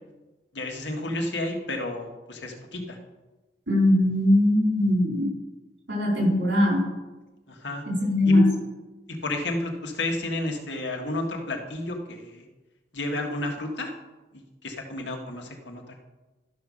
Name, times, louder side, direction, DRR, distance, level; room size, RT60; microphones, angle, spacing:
voice 1, 0.5-3.0 7.5-7.8 8.3-8.4 9.2-12.5 12.9-13.9 14.3-16.0, left 2 dB, 80° left, 2 dB, 1.6 m, -31 dB
voice 2, 3.7-5.3 5.9-6.8 7.9-8.5, left 1 dB, 90° right, -1 dB, 4.2 m, -20 dB
12.5 x 5.5 x 6.4 m, 1.2 s
head